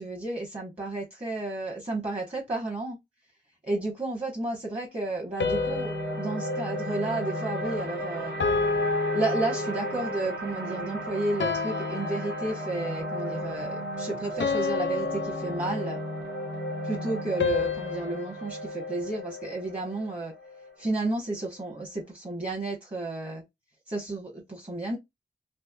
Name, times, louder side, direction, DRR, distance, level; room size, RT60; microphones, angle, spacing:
voice 1, 0.0-3.0 3.7-8.3 9.1-16.0 16.8-20.3 20.8-23.4 23.9-25.0, right 2 dB, 35° right, 1.3 m, -32 dB
sound 1, 5.4-7.9 8.4-10.2 11.4-12.9 14.4-16.3 17.4-19.8, left 5 dB, 80° left, 0.5 m, -32 dB
sound 2, 5.4-21.7, equal, 70° right, 1.3 m, -34 dB
3.4 x 3.0 x 2.3 m
wide cardioid pair, 75°, 19 cm